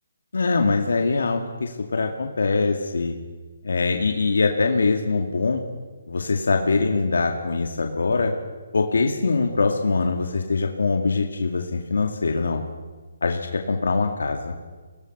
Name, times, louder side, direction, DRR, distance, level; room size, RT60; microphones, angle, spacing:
voice 1, 0.3-3.1 3.6-5.6 6.1-8.3 8.7-12.6 13.2-14.5, left 4 dB, 85° left, 3 dB, 2.1 m, -23 dB
24.5 x 18.5 x 6.1 m, 1.4 s
hypercardioid pair, 160°, 0 cm